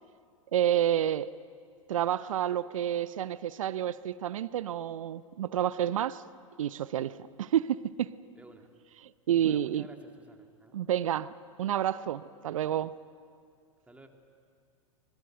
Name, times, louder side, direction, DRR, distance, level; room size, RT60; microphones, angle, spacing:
voice 1, 0.5-1.3 1.9-6.2 6.6-8.1 9.0-9.9 10.7-11.3 11.6-12.9, right 11 dB, 75° right, 0.6 m, -29 dB
voice 2, 8.4-8.7 9.4-10.8 13.8-14.1, right 2 dB, 10° right, 2.4 m, -53 dB
24.5 x 21.5 x 7.9 m
hypercardioid pair, 100°, 17 cm